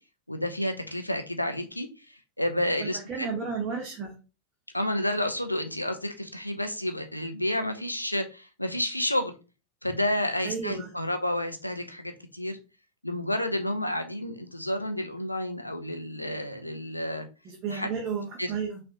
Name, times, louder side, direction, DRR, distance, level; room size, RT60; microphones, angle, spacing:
voice 1, 0.3-1.9 2.4-3.3 4.7-9.3 9.8-12.6 13.0-17.3 17.7-17.9 18.4-18.5, left 1 dB, 85° left, 7 dB, 0.7 m, -30 dB
voice 2, 2.8-4.1 10.4-10.9 17.4-18.8, right 6 dB, 30° right, 0 dB, 1.3 m, -33 dB
5.7 x 3.4 x 2.7 m, 0.31 s
figure-of-eight pair, 90°, 0 cm